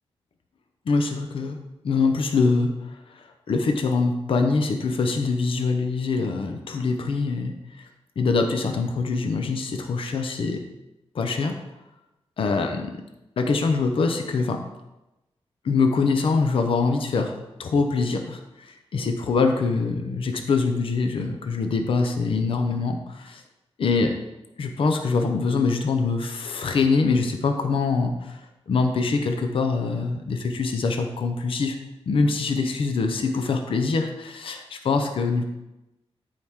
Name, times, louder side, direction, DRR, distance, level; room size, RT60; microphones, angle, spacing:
voice 1, 0.9-1.6 1.8-7.5 8.2-10.6 11.1-11.6 12.4-12.9 13.4-14.6 15.6-23.4 23.8-24.1 24.6-28.4 28.7-31.8 32.1-35.4, left 4 dB, 60° left, 5 dB, 0.8 m, -24 dB
13.0 x 4.8 x 3.7 m, 0.98 s
wide cardioid pair, 180°, 11 cm